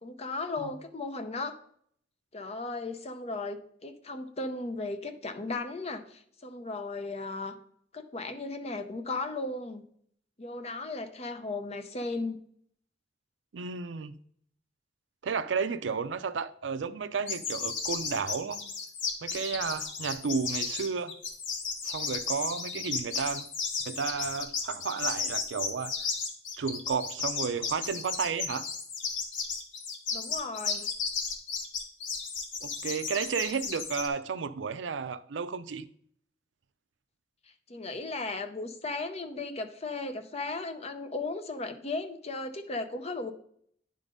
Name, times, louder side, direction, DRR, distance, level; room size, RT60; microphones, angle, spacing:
voice 1, 0.0-1.6 2.3-7.5 7.9-9.8 10.4-12.4 30.1-30.9 37.7-43.3, left 3 dB, 35° left, 0.7 m, -36 dB
voice 2, 13.5-14.1 15.2-18.7 19.2-21.1 21.8-23.5 23.9-25.9 26.6-28.7 32.6-35.9, right 5 dB, 75° right, 0.5 m, -32 dB
sound 1, 17.3-34.1, left 5 dB, 85° left, 1.2 m, -34 dB
9.8 x 3.8 x 5.1 m
head